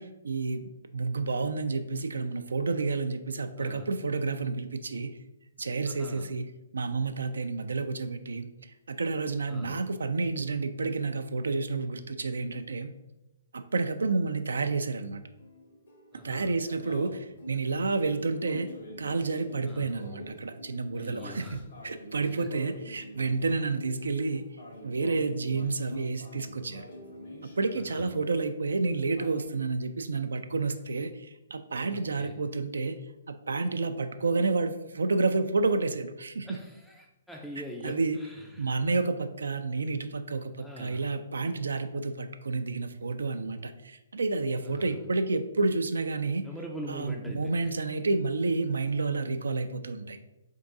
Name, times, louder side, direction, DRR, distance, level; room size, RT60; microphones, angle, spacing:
voice 1, 0.0-5.2 5.6-12.9 13.5-15.2 16.2-18.7 19.0-21.6 21.8-24.4 24.8-26.9 27.6-33.0 33.3-36.6 37.8-38.2 38.6-46.5 46.9-50.2, right 3 dB, 75° right, 8 dB, 0.3 m, -30 dB
voice 2, 3.6-3.9 5.8-6.3 9.5-9.8 16.1-16.5 19.7-19.9 20.9-21.7 22.2-22.5 27.7-28.1 31.9-32.4 36.4-38.7 40.6-41.1 44.6-45.0 46.4-47.7, equal, ahead, -1 dB, 0.4 m, -43 dB
sound 1, 15.4-28.5 28.7-29.4, left 1 dB, 65° left, 1.5 m, -46 dB
3.8 x 3.6 x 3.7 m, 0.98 s
figure-of-eight pair, 130°, 0 cm